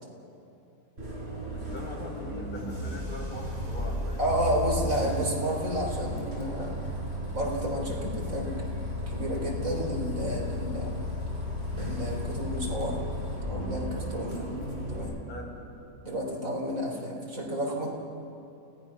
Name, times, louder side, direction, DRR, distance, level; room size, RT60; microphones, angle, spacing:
Bus, 1.0-15.0, equal, 45° right, 5.4 m, -34 dB
voice 1, 1.5-4.2 15.3-15.5, left 1 dB, 40° left, -1 dB, 4.2 m, -42 dB
voice 2, 4.2-6.8 7.3-8.5 9.1-10.9 11.7-13.0 13.4-14.5 14.9-15.2 16.0-17.9, equal, 70° right, -1 dB, 4.0 m, -31 dB
29.5 x 18.0 x 5.9 m, 2.8 s
omnidirectional pair, 1.5 m